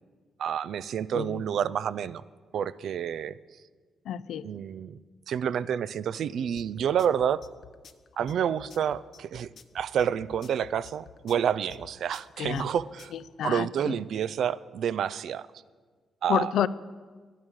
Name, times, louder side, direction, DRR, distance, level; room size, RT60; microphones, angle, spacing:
voice 1, 0.4-2.2 2.5-3.4 4.4-5.0 5.3-7.4 8.2-9.5 9.7-13.1 13.4-15.5 16.2-16.5, right 8 dB, 70° right, 18 dB, 0.4 m, -29 dB
voice 2, 4.1-4.5 12.4-12.7 13.1-14.0 16.3-16.7, left 10 dB, 75° left, 18 dB, 0.4 m, -29 dB
sound 1, 6.6-13.2, left 8 dB, 60° left, 0.8 m, -50 dB
11.0 x 10.5 x 6.3 m, 1.5 s
cardioid pair, 75°, 0 cm